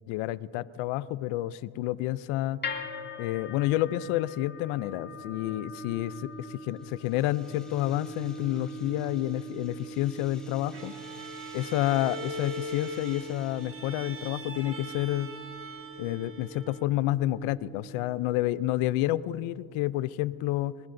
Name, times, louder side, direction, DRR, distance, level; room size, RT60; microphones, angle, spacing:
voice 1, 0.1-2.6 3.2-10.9 11.5-15.3 16.0-20.8, left 15 dB, 80° left, 19 dB, 0.6 m, -29 dB
sound 1, 2.6-18.8, equal, 20° left, 1.6 m, -43 dB
sound 2, 6.2-14.0, left 1 dB, ahead, 4.1 m, -54 dB
Bowed string instrument, 10.7-17.0, right 1 dB, 25° right, 1.8 m, -41 dB
21.0 x 20.0 x 2.6 m, 2.5 s
cardioid pair, 90°, 48 cm